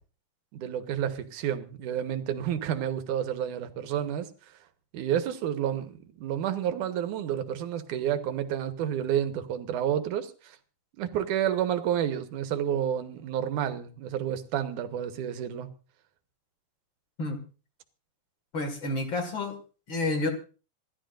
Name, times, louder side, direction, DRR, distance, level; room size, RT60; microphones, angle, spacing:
voice 1, 0.5-4.3 4.9-5.9 6.2-10.6 11.0-15.7, right 10 dB, 90° right, 2.6 m, -30 dB
voice 2, 18.5-19.6 19.9-20.3, left 2 dB, 45° left, 2.5 m, -29 dB
27.0 x 12.5 x 2.6 m
omnidirectional pair, 3.5 m